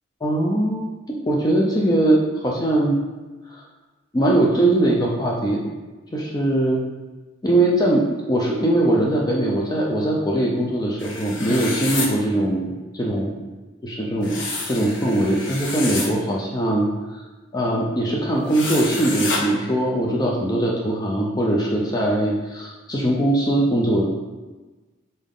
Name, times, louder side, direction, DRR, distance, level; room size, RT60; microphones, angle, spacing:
voice 1, 0.2-3.0 3.5-3.6 4.1-5.7 6.1-6.8 7.4-13.3 13.8-14.4 14.7-17.2 17.5-24.1, right 1 dB, 20° left, -2 dB, 0.4 m, -21 dB
sound 1, 11.0-12.1 14.2-16.1 18.5-19.4, left 3 dB, 70° left, 0.8 m, -29 dB
4.0 x 3.6 x 3.7 m, 1.2 s
head